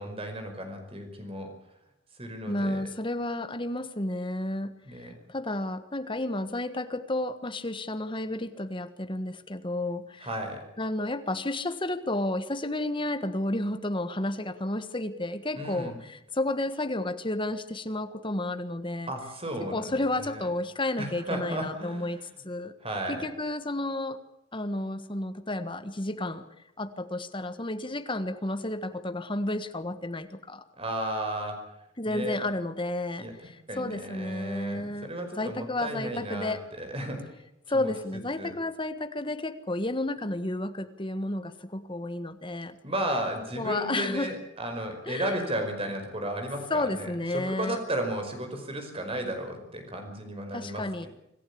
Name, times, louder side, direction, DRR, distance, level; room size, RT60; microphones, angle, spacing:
voice 1, 0.0-1.5 2.2-2.8 4.9-5.1 10.2-10.6 15.5-16.0 19.1-20.4 21.0-22.3 22.8-23.2 30.8-31.6 32.1-32.5 33.2-33.3 33.7-37.4 37.7-38.6 42.8-51.1, right 1 dB, 30° right, 5 dB, 5.2 m, -34 dB
voice 2, 2.5-10.3 10.8-19.1 19.7-22.7 23.1-24.2 24.5-26.5 26.8-30.6 32.0-35.1 35.4-36.6 37.7-42.8 43.6-44.3 45.1-45.4 46.7-47.8 50.5-51.1, left 1 dB, 25° left, 10 dB, 1.5 m, -31 dB
26.5 x 15.0 x 8.6 m, 0.85 s
head